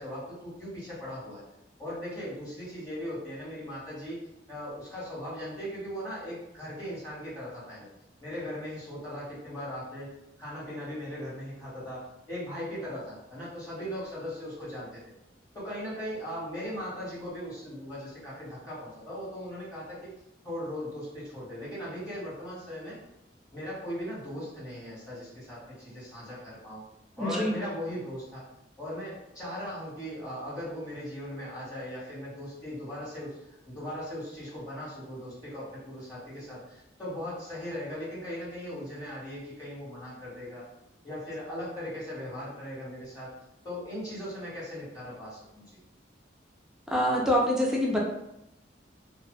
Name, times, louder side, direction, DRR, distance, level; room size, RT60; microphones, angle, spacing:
voice 1, 0.0-1.4 1.8-4.2 4.5-7.9 8.2-10.1 10.4-12.0 12.3-15.0 15.5-20.1 20.4-23.0 23.5-26.8 27.2-28.4 28.8-33.4 33.6-40.6 41.0-43.3 43.6-45.6, equal, 20° left, -9 dB, 1.2 m, -38 dB
voice 2, 27.2-27.6 46.9-48.0, equal, 5° right, -3 dB, 0.4 m, -25 dB
2.6 x 2.1 x 2.2 m, 0.85 s
head